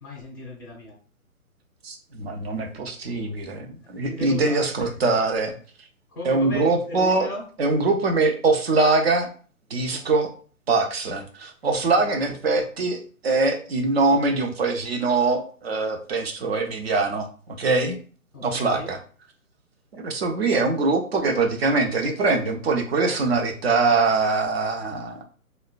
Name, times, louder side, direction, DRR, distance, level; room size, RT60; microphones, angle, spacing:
voice 1, 0.0-1.0 4.1-4.7 6.1-7.5 9.9-10.0 11.6-12.2 18.3-18.9, left 1 dB, 15° left, -2 dB, 0.6 m, -36 dB
voice 2, 1.8-5.5 6.2-7.3 7.6-9.3 9.7-10.3 10.7-18.0 18.4-19.0 19.9-25.2, right 3 dB, 45° right, 4 dB, 0.6 m, -23 dB
3.9 x 2.1 x 2.4 m, 0.41 s
hypercardioid pair, 145°, 44 cm